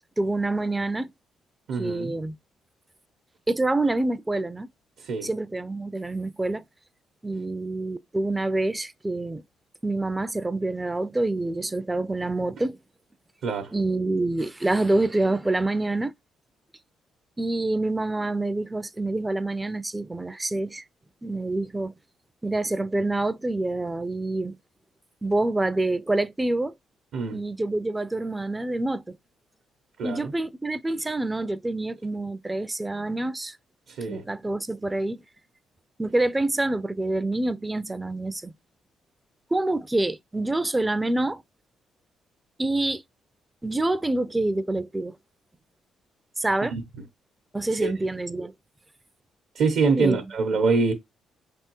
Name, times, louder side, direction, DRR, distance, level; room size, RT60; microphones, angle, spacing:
voice 1, 0.2-1.1 1.8-2.4 3.5-4.7 5.2-6.6 7.2-9.4 9.8-12.8 13.7-16.1 17.4-20.8 21.2-21.9 22.4-24.6 25.2-26.7 27.3-29.2 30.0-33.6 34.1-35.2 36.0-38.5 39.5-41.4 42.6-43.0 43.6-45.2 46.4-46.8 47.5-48.5 50.0-50.2, right 2 dB, 15° right, 0.3 m, -26 dB
voice 2, 1.7-2.1 5.0-5.3 13.4-13.7 27.1-27.4 30.0-30.3 34.0-34.2 46.7-46.8 47.8-47.9 49.6-50.9, right 4 dB, 75° right, 0.7 m, -24 dB
5.2 x 3.4 x 2.9 m
cardioid pair, 90°, 0 cm